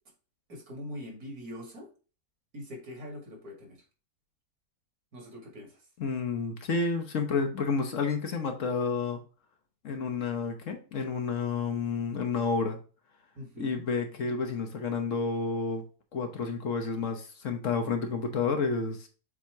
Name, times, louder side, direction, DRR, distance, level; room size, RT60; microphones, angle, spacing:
voice 1, 0.5-1.9 2.5-3.8 5.1-5.7 13.4-13.9, left 1 dB, 65° right, 1 dB, 2.5 m, -42 dB
voice 2, 6.0-9.2 9.8-12.8 13.6-15.8 16.1-19.1, left 4 dB, 55° left, 5 dB, 1.2 m, -30 dB
7.4 x 2.9 x 4.5 m, 0.35 s
omnidirectional pair, 1.7 m